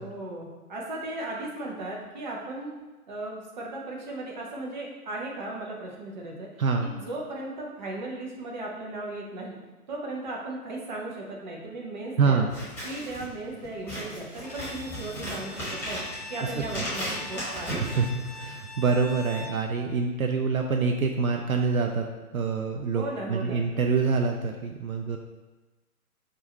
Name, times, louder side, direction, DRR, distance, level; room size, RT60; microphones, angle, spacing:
voice 1, 0.0-2.7 3.1-6.5 6.8-9.6 9.9-12.4 12.8-16.0 16.3-17.8 22.9-23.6, right 2 dB, 30° right, -2 dB, 0.8 m, -36 dB
voice 2, 12.2-12.5 16.4-16.5 16.8-16.9 17.8-22.1 22.3-25.2, right 4 dB, 65° right, 2 dB, 0.6 m, -26 dB
Scissors, 12.4-18.7, equal, 5° left, 1.3 m, -36 dB
Bowed string instrument, 14.4-19.6, left 2 dB, 30° left, 0.4 m, -43 dB
4.7 x 2.5 x 4.4 m, 1.2 s
figure-of-eight pair, 130°, 45 cm